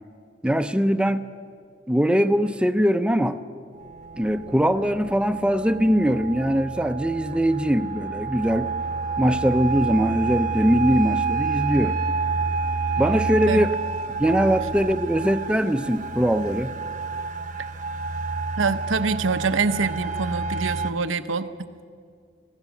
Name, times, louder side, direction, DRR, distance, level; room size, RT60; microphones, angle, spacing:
voice 1, 0.4-1.2 1.9-3.4 4.1-8.7 9.2-12.0 13.0-13.7 14.2-16.7, equal, 5° right, 10 dB, 0.6 m, -21 dB
sound 1, 3.8-20.9, right 4 dB, 40° right, 0.9 m, -29 dB
voice 2, 18.6-21.5, right 4 dB, 85° right, 10 dB, 0.9 m, -25 dB
25.0 x 17.0 x 7.2 m, 2.2 s
head